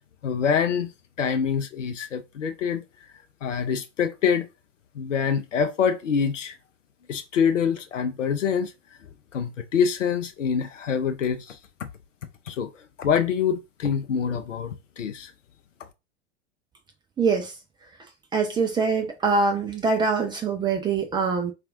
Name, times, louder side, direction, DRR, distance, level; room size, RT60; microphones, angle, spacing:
voice 1, 0.2-0.9 1.2-2.8 3.4-4.5 5.0-6.5 7.1-8.7 9.3-11.9 12.5-12.7 13.0-15.3, left 7 dB, 80° left, 0.5 m, -25 dB
voice 2, 17.2-17.5 18.3-21.5, right 4 dB, 15° right, 0.4 m, -24 dB
4.1 x 2.4 x 2.5 m
figure-of-eight pair, 85°, 36 cm